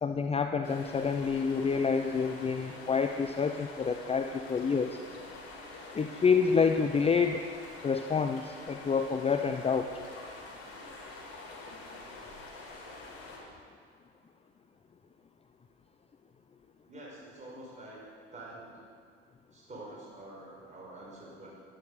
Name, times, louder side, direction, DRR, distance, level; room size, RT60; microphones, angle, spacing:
voice 1, 0.0-5.0 5.9-7.4 7.8-9.9, left 5 dB, 20° left, 7 dB, 0.7 m, -28 dB
sound 1, 0.6-13.4, left 3 dB, 55° left, 4.4 m, -46 dB
voice 2, 16.9-18.0 18.3-18.8 19.5-21.5, right 2 dB, 25° right, -4 dB, 5.0 m, -47 dB
12.5 x 12.0 x 6.7 m, 2.1 s
hypercardioid pair, 75°, 30 cm